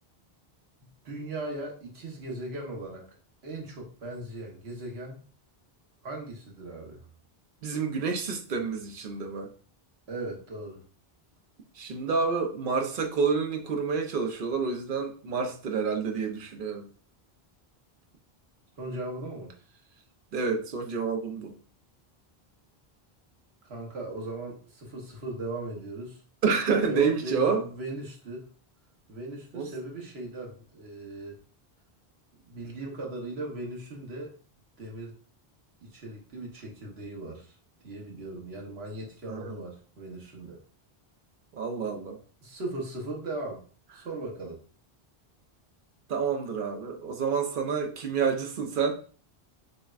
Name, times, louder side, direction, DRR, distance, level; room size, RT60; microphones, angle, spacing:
voice 1, 0.8-3.1 3.4-5.2 6.0-7.0 10.1-10.8 18.8-19.5 23.6-26.2 26.9-28.5 29.1-31.4 32.4-34.3 34.8-35.1 35.8-37.6 37.8-40.6 42.4-43.6 43.9-44.6, right 2 dB, 85° right, 0 dB, 1.3 m, -38 dB
voice 2, 7.6-9.5 11.8-16.9 20.3-21.5 26.4-27.6 29.5-29.7 39.3-39.6 41.5-42.2 46.1-49.0, right 5 dB, 60° right, 4 dB, 0.8 m, -28 dB
6.3 x 2.1 x 2.4 m, 0.41 s
omnidirectional pair, 1.0 m